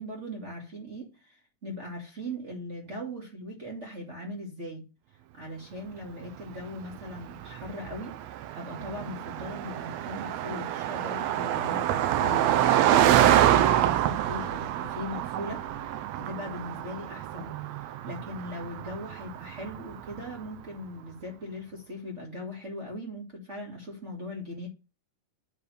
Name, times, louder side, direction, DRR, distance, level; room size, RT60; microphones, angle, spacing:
voice 1, 0.0-4.9 5.3-24.7, left 1 dB, 30° right, 1.4 m, -39 dB
Car passing by, 6.6-20.3, right 12 dB, 85° right, 1.5 m, -27 dB
9.7 x 3.4 x 6.9 m
omnidirectional pair, 3.8 m